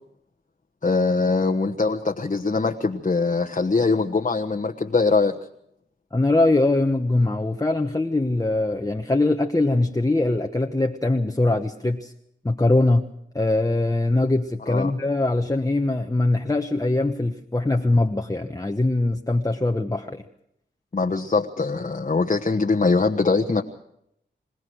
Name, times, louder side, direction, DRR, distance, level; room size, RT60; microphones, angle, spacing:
voice 1, 0.8-5.4 14.7-14.9 20.9-23.6, left 3 dB, 40° left, 3 dB, 1.3 m, -22 dB
voice 2, 6.1-12.1 12.4-13.1 13.3-20.2, left 2 dB, 20° left, 4 dB, 1.2 m, -22 dB
26.5 x 17.0 x 6.4 m, 0.75 s
wide cardioid pair, 65°, 20 cm